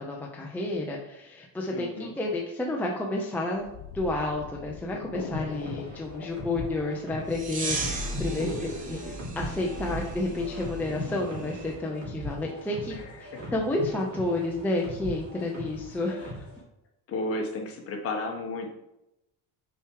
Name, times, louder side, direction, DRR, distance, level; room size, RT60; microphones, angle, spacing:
voice 1, 0.0-3.7 3.9-16.5, left 2 dB, 5° left, -1 dB, 0.5 m, -31 dB
voice 2, 1.7-2.1 8.4-8.7 12.9-13.5 17.1-18.7, left 2 dB, 35° left, 2 dB, 1.3 m, -33 dB
sound 1, 3.5-10.3, left 8 dB, 70° left, 0.7 m, -44 dB
sound 2, 5.3-16.6, left 1 dB, 45° right, 3.0 m, -40 dB
sound 3, 7.3-11.7, right 2 dB, 20° right, 0.9 m, -36 dB
6.9 x 4.7 x 4.7 m, 0.88 s
cardioid pair, 170°, 39 cm